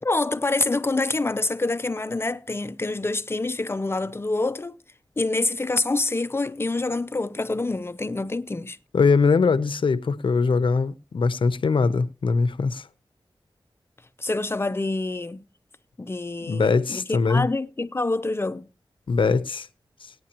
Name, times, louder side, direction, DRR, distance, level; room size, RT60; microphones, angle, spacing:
voice 1, 0.0-4.8 5.2-8.8 14.2-15.4 16.0-18.7, left 2 dB, 30° left, 0.6 m, -26 dB
voice 2, 8.9-12.9 16.5-17.5 19.1-19.7, left 4 dB, 75° left, 0.8 m, -21 dB
19.5 x 9.4 x 3.0 m
wide cardioid pair, 90°, 9 cm